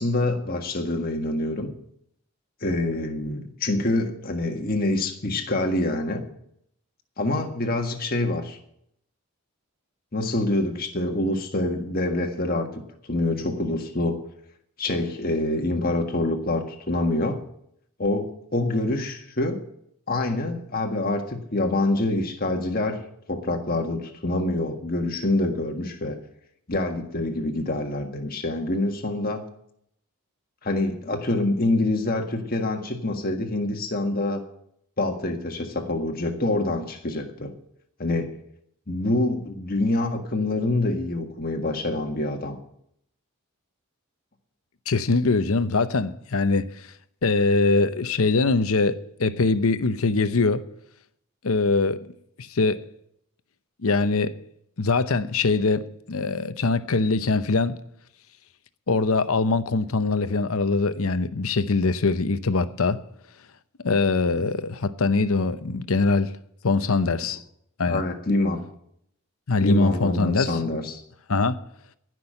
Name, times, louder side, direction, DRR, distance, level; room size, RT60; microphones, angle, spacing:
voice 1, 0.0-1.7 2.6-6.2 7.2-8.6 10.1-12.7 13.1-14.2 14.8-17.4 18.0-19.6 20.1-23.0 23.3-26.2 26.7-29.4 30.6-34.4 35.0-37.5 38.0-38.3 38.9-42.6 67.9-68.6 69.6-71.0, left 2 dB, 40° left, 1.7 m, -26 dB
voice 2, 44.9-46.9 47.2-50.6 51.4-52.1 52.4-52.8 53.8-54.3 54.8-57.7 58.9-63.0 63.8-66.3 66.6-67.4 67.8-68.0 69.5-70.6 71.3-71.6, left 3 dB, 75° left, 0.8 m, -22 dB
15.5 x 6.2 x 8.8 m
head